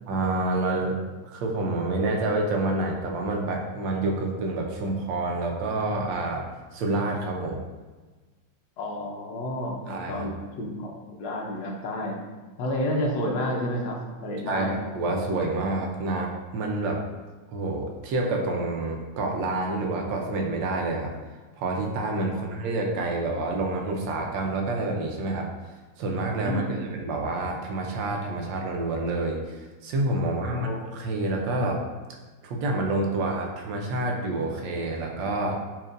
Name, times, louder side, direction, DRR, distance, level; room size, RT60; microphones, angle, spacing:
voice 1, 0.1-1.0 1.3-6.4 6.7-7.6 9.9-10.3 14.5-17.0 17.5-21.1 21.6-25.5 26.0-31.8 32.4-35.6, right 2 dB, 80° right, 1 dB, 1.3 m, -28 dB
voice 2, 8.8-12.2 12.6-14.8 22.3-22.5 26.4-26.9 30.2-30.9, left 1 dB, 70° left, 0 dB, 1.2 m, -31 dB
4.3 x 3.0 x 2.5 m, 1.3 s
omnidirectional pair, 2.0 m